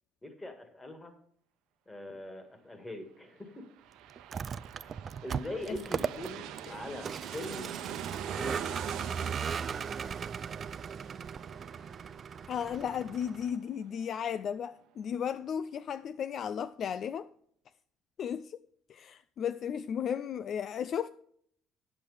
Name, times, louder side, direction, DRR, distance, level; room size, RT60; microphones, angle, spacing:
voice 1, 0.2-1.1 1.8-3.6 4.8-7.7 8.3-8.8, left 1 dB, 15° left, 1.7 m, -42 dB
sound 1, 3.5-14.8 15.2-15.3, right 11 dB, 80° right, 0.8 m, -45 dB
Vehicle, 4.2-13.5, right 6 dB, 35° right, 0.3 m, -38 dB
voice 2, 12.5-17.3 18.2-18.6 18.9-21.1, left 8 dB, 50° left, 0.3 m, -35 dB
8.6 x 7.5 x 4.9 m
cardioid pair, 120°, 0 cm